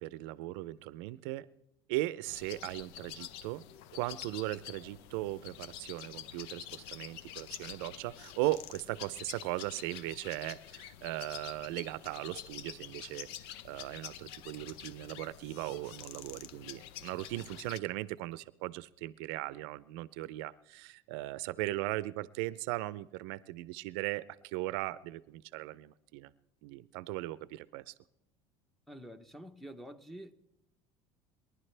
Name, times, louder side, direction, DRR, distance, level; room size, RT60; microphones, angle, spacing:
voice 1, 0.0-1.5 1.9-3.6 3.9-13.3 13.6-26.3 26.6-27.9, right 17 dB, 85° right, 0.5 m, -38 dB
sound 1, 2.3-17.8, left 11 dB, 85° left, 0.6 m, -47 dB
voice 2, 28.9-30.3, right 1 dB, ahead, 0.9 m, -47 dB
28.0 x 11.5 x 3.3 m
cardioid pair, 125°, 13 cm